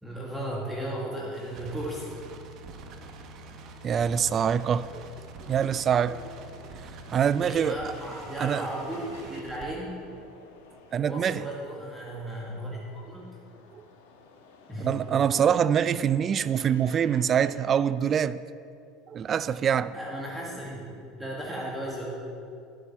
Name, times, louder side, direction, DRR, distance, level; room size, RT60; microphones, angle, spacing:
voice 1, 0.0-2.1 6.1-6.2 7.3-10.0 11.0-13.3 14.7-14.9 19.9-22.1, right 1 dB, 5° right, -5 dB, 1.8 m, -35 dB
sound 1, 1.3-9.7, right 3 dB, 55° right, 1.0 m, -46 dB
sound 2, 2.9-17.7, left 4 dB, 80° left, 1.2 m, -55 dB
voice 2, 3.8-5.0 5.4-6.2 7.1-7.7 8.4-8.7 10.9-11.4 13.7-13.8 14.8-18.4 19.1-20.0, right 8 dB, 40° right, 16 dB, 0.3 m, -25 dB
10.5 x 8.3 x 4.3 m, 2.5 s
hypercardioid pair, 90°, 0 cm